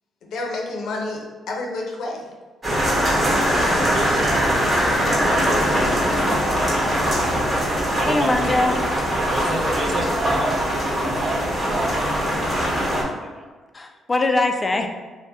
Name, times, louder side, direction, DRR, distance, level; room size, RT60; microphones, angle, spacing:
voice 1, 0.2-2.3, left 2 dB, 75° left, 0 dB, 0.6 m, -29 dB
sound 1, 2.6-13.0, equal, 30° right, 1.0 m, -21 dB
voice 2, 3.9-6.2 8.0-8.6 9.3-12.1 12.8-13.4, right 2 dB, 50° right, 0 dB, 0.5 m, -30 dB
voice 3, 8.1-8.9 13.7-14.9, left 2 dB, 25° left, 5 dB, 0.3 m, -22 dB
2.7 x 2.1 x 3.4 m, 1.4 s
cardioid pair, 90°, 0 cm